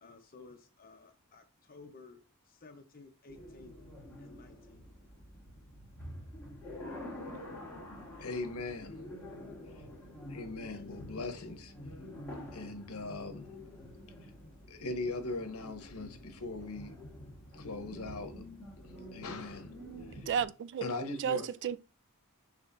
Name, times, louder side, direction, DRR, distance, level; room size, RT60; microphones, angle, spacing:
voice 1, 0.0-2.2 2.5-3.7 4.2-4.8 8.2-8.4 10.7-10.8, left 3 dB, 40° left, 0.8 m, -54 dB
sound 1, 3.3-20.5, left 1 dB, 10° left, 1.5 m, -48 dB
voice 2, 8.2-9.0 10.3-11.7 12.5-13.6 14.7-17.0 17.5-18.4 18.7-19.7 20.1-20.3 20.8-21.5, left 2 dB, 80° left, 0.8 m, -40 dB
voice 3, 20.3-20.9 21.2-21.8, right 7 dB, 55° right, 0.3 m, -32 dB
6.1 x 3.1 x 2.5 m
head